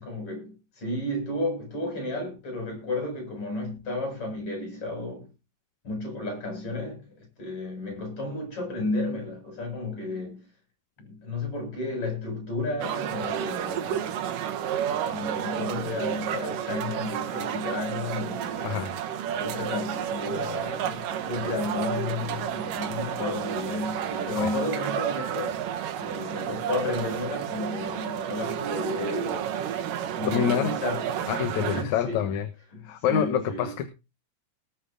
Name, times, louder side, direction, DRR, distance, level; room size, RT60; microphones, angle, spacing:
voice 1, 0.0-5.3 5.8-10.5 11.0-14.2 15.1-18.7 19.3-25.6 26.0-29.5 30.2-31.1 31.6-32.2 32.7-33.7, left 2 dB, 40° left, 8.8 m, -32 dB
sound 1, 12.8-31.8, right 9 dB, 85° right, 3.0 m, -31 dB
voice 2, 18.6-18.9 24.4-24.5 30.2-30.7 31.3-32.5 32.8-33.9, left 9 dB, 65° left, 2.4 m, -26 dB
19.5 x 7.8 x 3.7 m
omnidirectional pair, 3.8 m